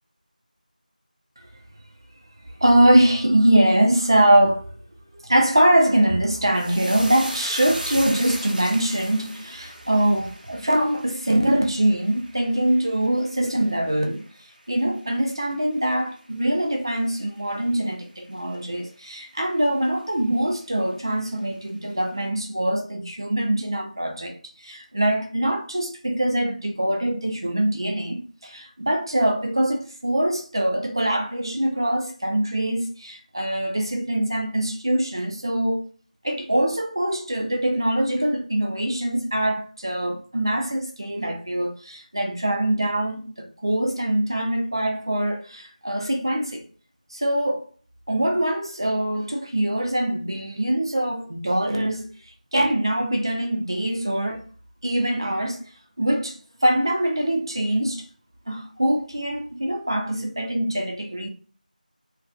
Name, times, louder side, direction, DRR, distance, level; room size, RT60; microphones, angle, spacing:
voice 1, 2.6-4.7 5.2-14.2 14.7-24.4 24.6-35.9 36.2-46.6 47.1-47.6 48.1-52.0 52.5-54.4 54.8-55.6 56.0-58.1 58.5-61.3, right 1 dB, 30° right, 0.5 m, -23 dB
sound 1, 6.5-15.2 15.5-16.1 16.4-16.6, equal, 85° right, 0.8 m, -38 dB
2.6 x 2.3 x 2.2 m
figure-of-eight pair, 175°, 5 cm